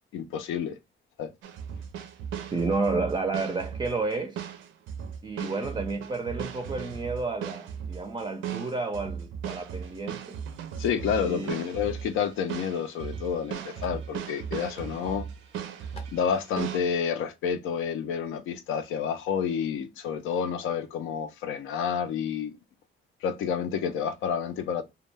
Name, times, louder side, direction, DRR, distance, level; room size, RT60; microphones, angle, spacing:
voice 1, 0.1-0.8 1.2-1.3 10.8-15.3 16.1-22.6 23.2-24.8, left 7 dB, 85° left, 0.5 m, -29 dB
sound 1, 1.4-16.8, right 8 dB, 85° right, 0.5 m, -37 dB
voice 2, 2.5-4.4 5.2-10.4 11.2-11.6, right 3 dB, 20° right, 0.4 m, -31 dB
sound 2, 11.4-11.7 12.6-12.7 13.0-13.1 13.7-14.1 14.8-15.0 15.4-15.5 16.0-16.2, left 3 dB, 30° left, 0.6 m, -51 dB
2.3 x 2.1 x 3.2 m
cardioid pair, 90°, 20 cm